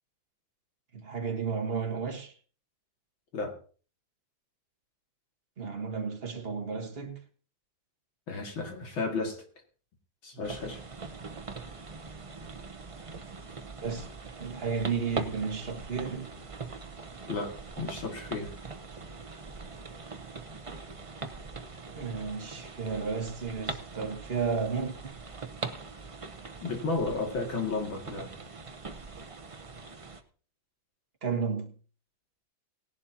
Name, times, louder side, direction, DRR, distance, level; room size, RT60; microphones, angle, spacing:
voice 1, 0.9-2.3 5.6-7.2 13.8-14.1 14.4-16.3 21.9-25.1 31.2-31.7, right 5 dB, 30° right, 1.7 m, -33 dB
voice 2, 8.3-9.4 10.2-10.8 17.3-18.5 26.6-28.3, left 3 dB, 80° left, 3.1 m, -33 dB
sound 1, 10.4-30.2, right 4 dB, 55° right, 0.3 m, -42 dB
18.0 x 11.0 x 2.9 m
omnidirectional pair, 2.1 m